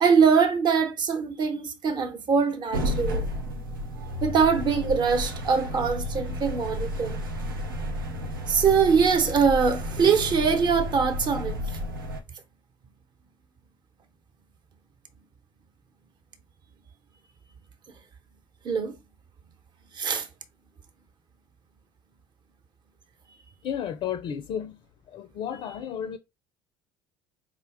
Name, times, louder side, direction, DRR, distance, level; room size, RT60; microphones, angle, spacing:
voice 1, 0.0-3.2 4.2-7.2 8.5-11.6 18.6-18.9 20.0-20.3, right 6 dB, 40° right, 0.9 m, -23 dB
sound 1, 2.7-12.2, left 1 dB, 85° right, 0.7 m, -32 dB
voice 2, 23.6-24.8 25.1-26.2, left 9 dB, 50° left, 0.4 m, -32 dB
4.6 x 2.2 x 3.5 m
hypercardioid pair, 60°, 11 cm